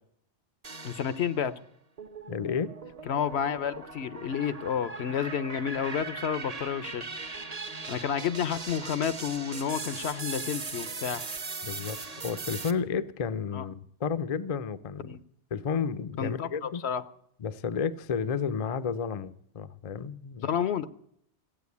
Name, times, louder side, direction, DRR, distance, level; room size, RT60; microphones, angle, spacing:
sound 1, 0.6-1.5 2.0-12.7, right 4 dB, 35° right, 1.0 m, -39 dB
voice 1, 0.8-1.5 3.1-7.1 7.9-11.2 13.5-13.7 15.0-15.2 16.2-17.0 20.4-20.8, left 8 dB, 70° left, 14 dB, 1.0 m, -30 dB
voice 2, 2.3-2.7 11.6-15.2 15.5-16.8 17.4-20.5, left 6 dB, 40° left, 13 dB, 0.5 m, -32 dB
15.0 x 8.7 x 8.3 m, 0.70 s
omnidirectional pair, 1.2 m